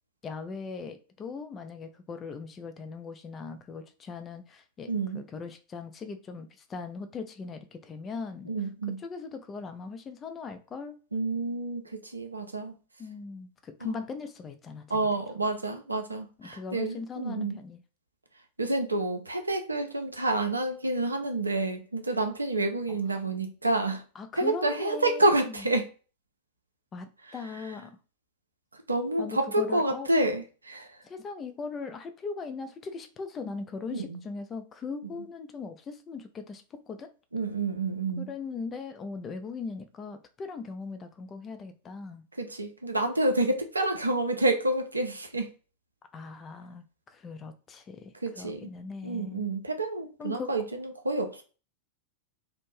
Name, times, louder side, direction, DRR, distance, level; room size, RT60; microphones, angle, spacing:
voice 1, 0.2-8.5 9.0-11.0 13.0-15.0 16.4-17.8 22.9-23.0 24.2-25.6 26.9-28.0 29.2-30.1 31.0-37.1 38.2-42.2 46.1-49.5 50.2-50.6, left 4 dB, 25° left, 0.4 m, -39 dB
voice 2, 4.9-5.2 8.5-9.0 11.1-12.7 13.8-13.9 14.9-17.6 18.6-24.0 24.3-25.9 28.9-30.9 33.9-34.2 37.3-38.3 42.4-45.5 48.2-48.7 49.0-51.4, right 2 dB, 80° right, 0.4 m, -28 dB
2.5 x 2.1 x 3.0 m
figure-of-eight pair, 90°, 0 cm